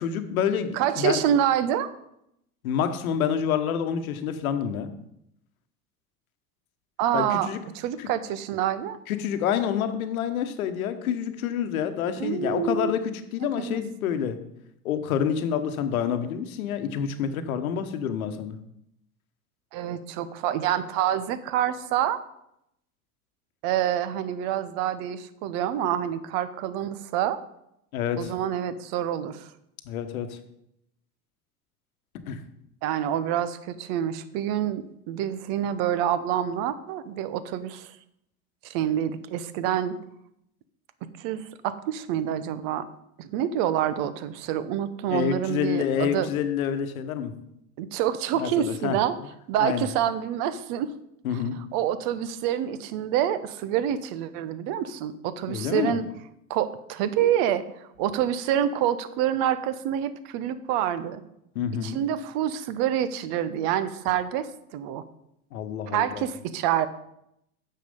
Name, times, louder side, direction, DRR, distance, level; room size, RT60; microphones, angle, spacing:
voice 1, 0.0-1.2 2.6-4.9 7.1-7.6 8.0-8.1 9.1-14.4 14.8-18.6 27.9-28.3 29.9-30.4 32.3-32.4 45.1-47.3 48.3-49.0 49.6-49.9 51.2-51.6 55.5-56.0 61.5-62.0 65.5-66.2, left 8 dB, 65° left, 9 dB, 1.1 m, -28 dB
voice 2, 0.7-1.9 7.0-9.0 12.2-12.9 13.6-13.8 19.7-22.2 23.6-27.4 28.2-29.5 32.8-37.9 38.6-40.0 41.2-42.9 43.2-46.3 47.8-49.2 49.5-50.9 51.3-51.4 51.7-56.1 56.5-57.6 58.0-61.2 61.8-65.0 65.9-66.9, right 10 dB, 50° right, 14 dB, 0.9 m, -27 dB
9.3 x 6.8 x 5.4 m, 0.78 s
figure-of-eight pair, 75°, 45 cm